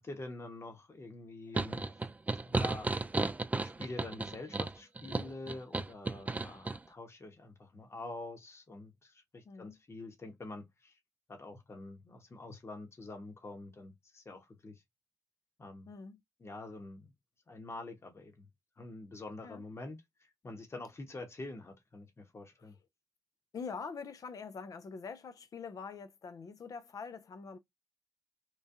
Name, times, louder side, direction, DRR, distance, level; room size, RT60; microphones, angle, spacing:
voice 1, 0.0-1.9 2.4-2.9 3.6-11.0 11.3-14.8 15.6-15.9 16.4-17.1 17.5-18.5 18.8-22.8, left 2 dB, 45° left, 1.2 m, -46 dB
sound 1, 1.5-6.8, right 3 dB, 25° right, 0.4 m, -34 dB
voice 2, 9.4-9.8 15.9-16.2 19.4-19.6 23.5-27.6, left 5 dB, 65° left, 0.6 m, -44 dB
3.1 x 2.3 x 2.6 m
cardioid pair, 55°, 6 cm